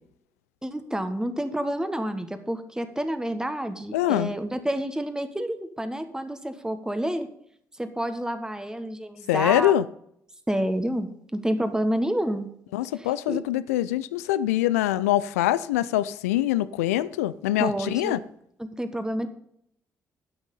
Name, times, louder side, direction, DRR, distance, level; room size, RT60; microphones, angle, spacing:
voice 1, 0.6-7.3 7.8-9.7 10.5-12.5 13.0-13.4 17.6-18.2 18.6-19.3, right 1 dB, 10° right, 1.4 m, -29 dB
voice 2, 3.9-4.3 9.3-9.8 12.7-18.2, left 13 dB, 90° left, 0.4 m, -24 dB
13.5 x 6.3 x 5.5 m
hypercardioid pair, 45°, 8 cm